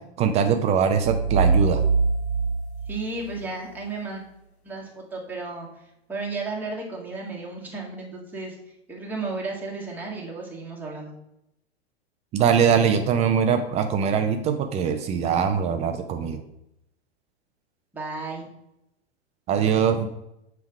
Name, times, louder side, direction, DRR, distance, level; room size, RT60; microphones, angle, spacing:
voice 1, 0.2-1.8 12.3-16.4 19.5-20.1, right 7 dB, 20° right, 7 dB, 0.4 m, -22 dB
sound 1, 1.0-3.9, right 4 dB, 80° left, 1.3 m, -23 dB
voice 2, 2.9-4.2 4.6-5.7 6.1-8.6 8.9-11.1 17.9-18.5, right 3 dB, 5° right, -4 dB, 1.6 m, -33 dB
7.1 x 3.4 x 4.7 m, 0.84 s
figure-of-eight pair, 95°, 32 cm